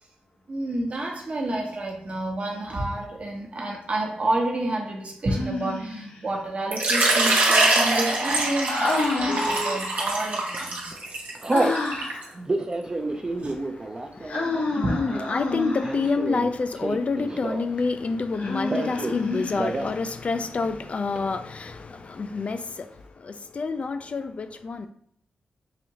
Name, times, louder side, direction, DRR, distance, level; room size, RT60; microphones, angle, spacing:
voice 1, 0.5-11.0 13.4-13.5 14.8-14.9, right 1 dB, 45° right, 0.9 m, -29 dB
Human voice, 5.3-6.2 8.7-10.0 11.5-12.3 14.3-16.1 18.3-19.9, left 2 dB, 90° left, 1.2 m, -29 dB
Water / Liquid, 6.7-12.2, right 2 dB, 70° right, 1.1 m, -23 dB
Telephone, 9.3-9.8 10.4-10.6 10.9-11.8 12.3-17.8 18.1-19.2 19.5-20.0 20.3-20.4 20.6-21.2, right 2 dB, 25° right, 0.5 m, -30 dB
voice 2, 14.1-14.5 14.7-24.9, left 4 dB, 45° left, 0.4 m, -28 dB
4.9 x 2.6 x 2.9 m
cardioid pair, 80°, 3 cm